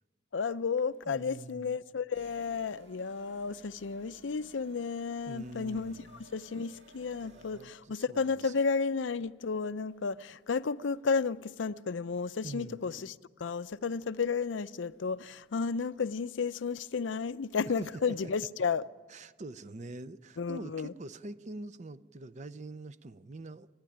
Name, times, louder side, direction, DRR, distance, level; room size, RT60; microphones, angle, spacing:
voice 1, 0.3-6.0 6.3-13.1 13.4-18.8 20.4-20.9, left 5 dB, 85° left, 0.5 m, -32 dB
voice 2, 1.1-1.7 5.3-6.3 7.2-8.6 12.4-12.8 17.8-18.3 19.1-23.7, right 2 dB, 40° right, 0.6 m, -45 dB
sound 1, 2.1-7.6, right 2 dB, 70° right, 1.9 m, -58 dB
29.5 x 10.5 x 10.0 m
head